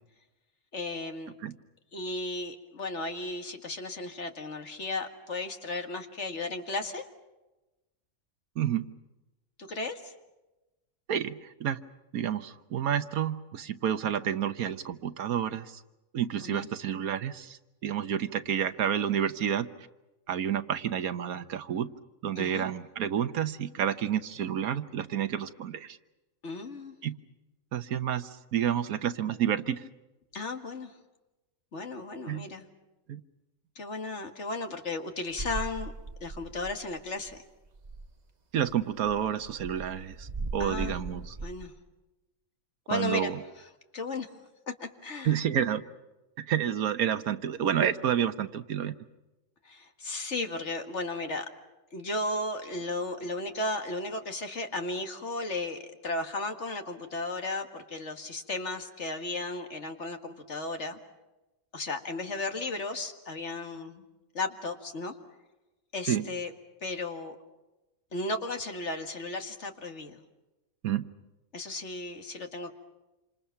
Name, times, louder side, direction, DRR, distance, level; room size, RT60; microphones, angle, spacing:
voice 1, 0.7-1.3 1.9-7.0 9.6-10.1 16.4-16.7 22.4-22.7 26.4-26.9 30.3-30.9 31.7-32.7 33.8-35.9 36.2-37.4 40.6-41.0 41.4-41.7 42.9-43.3 43.9-44.4 44.8-45.4 49.6-51.5 51.9-61.0 61.7-64.0 64.3-65.1 65.9-66.5 66.8-67.4 68.1-70.2 71.5-72.7, left 2 dB, 55° left, 5 dB, 2.1 m, -35 dB
voice 2, 8.6-8.9 11.1-11.8 12.1-15.8 16.1-19.7 20.3-21.9 22.2-26.0 27.0-27.1 27.7-29.8 32.3-32.5 33.1-33.2 38.5-41.4 42.9-43.4 45.2-45.8 46.4-49.0 66.1-66.3 70.8-71.0, right 9 dB, 85° right, 11 dB, 1.5 m, -29 dB
sound 1, 35.3-37.0 37.3-37.4 37.7-38.1 38.7-41.7, right 3 dB, 30° right, 1.1 m, -39 dB
28.0 x 26.5 x 5.8 m, 1.1 s
omnidirectional pair, 1.5 m